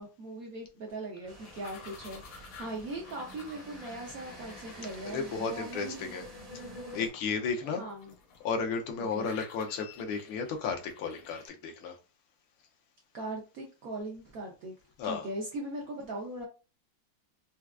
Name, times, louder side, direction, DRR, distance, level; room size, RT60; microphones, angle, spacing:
voice 1, 0.0-6.1 7.7-8.1 9.0-9.3 13.1-14.7 15.0-16.5, right 2 dB, 80° right, 0.8 m, -40 dB
sound 1, 1.3-7.1, equal, 40° right, 0.5 m, -48 dB
sound 2, 1.4-11.5, left 5 dB, 70° left, 1.5 m, -53 dB
voice 2, 5.0-6.2 6.5-6.7 6.9-7.8 8.4-12.0 15.0-15.3, left 5 dB, 85° left, 1.5 m, -33 dB
4.6 x 2.2 x 2.3 m
omnidirectional pair, 2.3 m